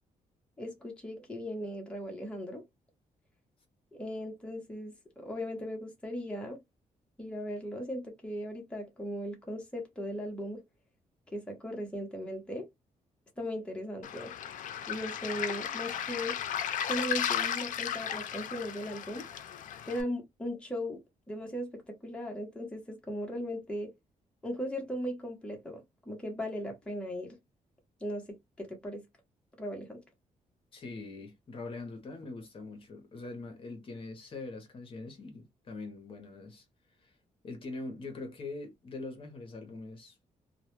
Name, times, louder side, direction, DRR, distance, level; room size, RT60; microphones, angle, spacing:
voice 1, 0.6-2.6 3.9-6.6 7.2-10.6 11.3-12.7 13.4-14.3 14.9-16.4 16.9-19.3 19.9-21.0 21.3-23.9 24.4-27.4 28.0-28.3 28.6-29.0 29.6-30.0, equal, 10° left, 0.8 m, -38 dB
Waves surf, 14.0-20.0, left 9 dB, 70° left, 0.4 m, -35 dB
voice 2, 30.7-36.6 37.0-37.1 37.4-40.2, left 3 dB, 40° left, 0.7 m, -43 dB
2.2 x 2.1 x 3.0 m
cardioid pair, 145°, 14 cm